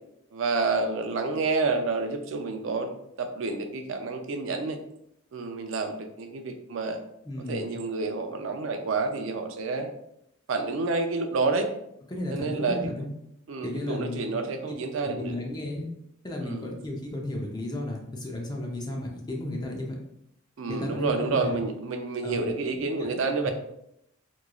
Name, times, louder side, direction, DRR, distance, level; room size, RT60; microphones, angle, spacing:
voice 1, 0.3-4.8 5.3-7.0 7.5-9.9 10.5-11.7 12.3-12.8 13.5-15.4 16.4-16.7 20.6-23.5, right 3 dB, 70° right, 6 dB, 0.4 m, -29 dB
voice 2, 7.3-7.8 12.1-13.1 13.6-14.4 15.0-15.9 16.2-20.0 20.7-21.6 22.2-22.5 23.0-23.2 23.4-23.5, left 1 dB, 20° left, 0 dB, 0.5 m, -34 dB
3.6 x 3.0 x 2.3 m, 0.78 s
head